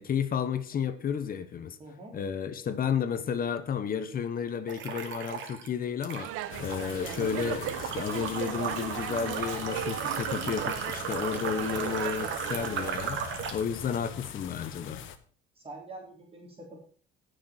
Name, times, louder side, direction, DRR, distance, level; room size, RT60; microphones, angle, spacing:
voice 1, 0.0-1.8 2.1-6.3 6.6-15.0, left 7 dB, 45° left, 1.2 m, -32 dB
voice 2, 1.8-2.2 15.6-16.8, right 2 dB, 25° right, 3.7 m, -45 dB
sound 1, 4.7-5.7 6.0-13.6, right 7 dB, 65° right, 2.5 m, -36 dB
Dog, 6.2-13.1, right 13 dB, 85° right, 0.9 m, -37 dB
sound 2, 6.5-15.2, left 9 dB, 65° left, 1.3 m, -42 dB
16.5 x 6.7 x 4.4 m
cardioid pair, 125°, 21 cm